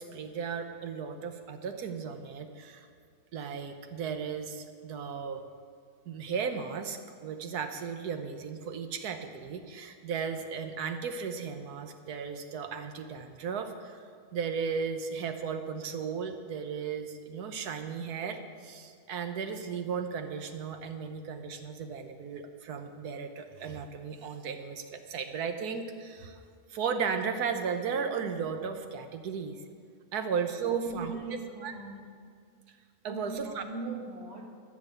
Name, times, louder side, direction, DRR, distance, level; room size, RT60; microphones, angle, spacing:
voice 1, 0.0-2.9 3.3-5.4 6.1-26.4 26.7-29.6 30.1-31.2 31.6-31.7 33.0-33.6, right 6 dB, 80° right, 7 dB, 1.5 m, -35 dB
voice 2, 30.7-32.2 33.1-34.5, right 3 dB, 45° right, 0 dB, 2.0 m, -40 dB
13.5 x 6.3 x 8.3 m, 2.1 s
omnidirectional pair, 1.7 m